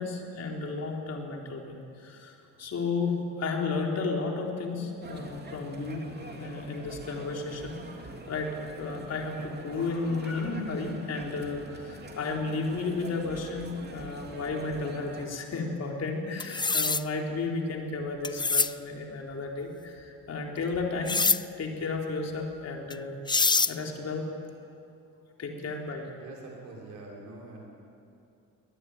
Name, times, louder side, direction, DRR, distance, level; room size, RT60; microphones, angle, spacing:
voice 1, 0.0-2.3 2.6-7.8 8.3-21.2 21.6-23.1 23.7-24.3 25.4-26.1, left 3 dB, 55° left, 1 dB, 4.1 m, -33 dB
sound 1, 5.0-15.3, right 2 dB, 35° right, 2.9 m, -44 dB
sound 2, 16.4-17.0 18.2-18.7 21.1-21.4 22.9-23.0 23.3-23.7, left 4 dB, 15° left, 0.5 m, -24 dB
voice 2, 26.2-27.7, right 2 dB, 75° right, -2 dB, 6.6 m, -44 dB
22.0 x 19.0 x 9.3 m, 2.6 s
cardioid pair, 90°, 30 cm